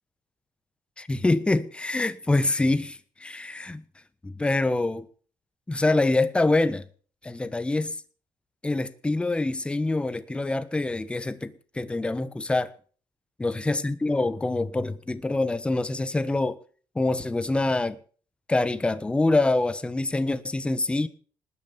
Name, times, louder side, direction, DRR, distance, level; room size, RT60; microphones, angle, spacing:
voice 1, 1.0-3.8 4.2-5.0 5.7-6.9 7.2-8.0 8.6-12.7 13.4-16.6 16.9-18.0 18.5-21.1, left 2 dB, 10° left, 1.2 m, -25 dB
19.5 x 9.3 x 7.0 m
cardioid pair, 125°, 9 cm